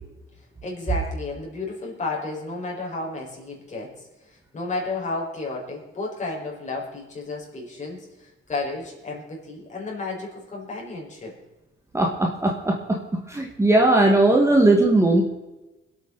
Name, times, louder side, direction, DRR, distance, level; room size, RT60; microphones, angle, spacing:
voice 1, 0.6-11.3, left 3 dB, 35° left, -2 dB, 5.3 m, -32 dB
voice 2, 11.9-13.0 13.3-15.2, right 2 dB, 15° right, 1 dB, 1.9 m, -18 dB
25.0 x 8.7 x 4.1 m, 1.1 s
cardioid pair, 130°, 21 cm